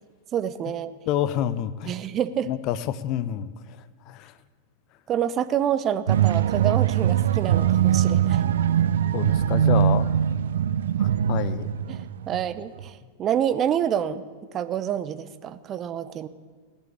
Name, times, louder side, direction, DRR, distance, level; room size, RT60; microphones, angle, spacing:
voice 1, 0.3-0.9 1.9-2.5 5.1-8.4 11.9-14.2 14.5-16.3, right 9 dB, 30° right, 13 dB, 0.8 m, -27 dB
voice 2, 1.1-2.0 2.4-3.8 4.1-4.3 9.1-10.1 11.0-11.7, left 11 dB, 40° left, 15 dB, 0.7 m, -28 dB
sound 1, 6.1-12.5 12.8-12.9, right 10 dB, 65° right, 0.5 m, -22 dB
18.0 x 8.7 x 8.5 m, 1.5 s
figure-of-eight pair, 90°, 0 cm